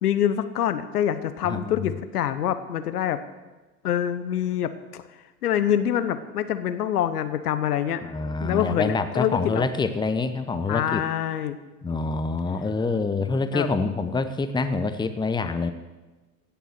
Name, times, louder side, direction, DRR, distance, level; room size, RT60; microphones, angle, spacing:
voice 1, 0.0-3.2 3.8-5.0 5.4-8.0 8.4-9.6 10.7-11.6 13.5-13.7, left 10 dB, 75° left, 12 dB, 1.1 m, -25 dB
voice 2, 1.4-1.9 8.0-11.0 11.8-15.7, left 3 dB, 10° left, 10 dB, 0.9 m, -26 dB
16.0 x 7.2 x 7.8 m, 1.2 s
figure-of-eight pair, 80°, 46 cm